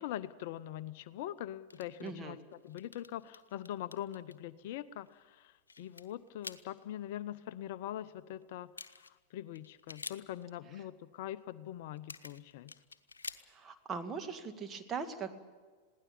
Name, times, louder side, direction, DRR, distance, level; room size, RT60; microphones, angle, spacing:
voice 1, 0.0-2.4 2.6-12.7, left 12 dB, 50° left, 16 dB, 0.6 m, -43 dB
sound 1, 1.7-2.2 2.5-4.4 5.1-5.2 5.4-6.8 8.4-8.5 8.7-9.2 9.5-10.4 12.0-13.7, left 4 dB, 75° left, 0.9 m, -48 dB
voice 2, 2.0-2.4 13.5-15.3, right 5 dB, 20° right, 7 dB, 2.0 m, -40 dB
21.5 x 16.5 x 8.6 m, 1.5 s
figure-of-eight pair, 90°, 0 cm